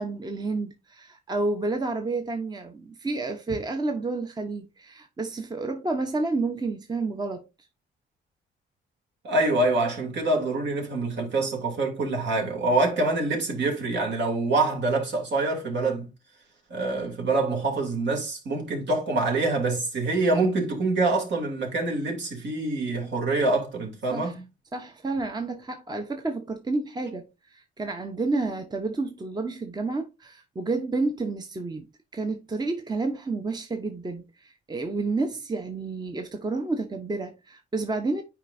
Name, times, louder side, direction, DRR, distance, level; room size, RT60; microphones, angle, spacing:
voice 1, 0.0-7.5 24.1-24.3 24.7-31.8 32.1-38.2, right 3 dB, 20° right, 0.9 m, -30 dB
voice 2, 9.2-16.1 16.7-24.4, right 2 dB, 65° right, 2.8 m, -25 dB
8.8 x 4.9 x 2.6 m
cardioid pair, 90°, 20 cm